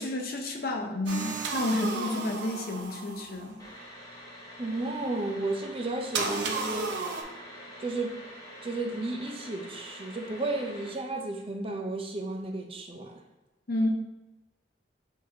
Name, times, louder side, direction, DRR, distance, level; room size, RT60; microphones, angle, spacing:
voice 1, 0.0-3.6 13.7-13.9, left 1 dB, 55° left, 2 dB, 0.6 m, -30 dB
sound 1, 1.1-3.5 6.1-7.2, right 3 dB, 75° right, 0.6 m, -33 dB
sound 2, 3.6-10.9, equal, 20° left, 0.8 m, -46 dB
voice 2, 4.6-6.9 7.8-8.2 8.6-13.2, right 2 dB, 30° right, 2 dB, 0.5 m, -33 dB
6.6 x 2.8 x 2.8 m, 1.1 s
head